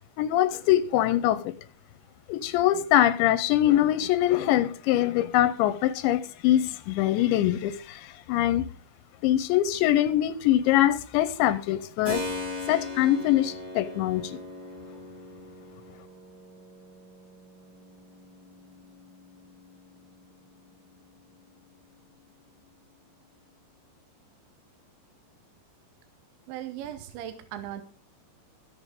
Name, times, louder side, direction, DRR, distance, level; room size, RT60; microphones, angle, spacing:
voice 1, 0.2-1.6 2.3-8.7 9.2-12.2 12.7-14.4, left 13 dB, 85° left, 3.0 m, -23 dB
Keyboard (musical), 12.0-20.7, left 2 dB, 35° right, 8.4 m, -40 dB
voice 2, 26.5-27.8, right 11 dB, 80° right, 3.3 m, -37 dB
22.5 x 7.9 x 3.8 m
omnidirectional pair, 5.3 m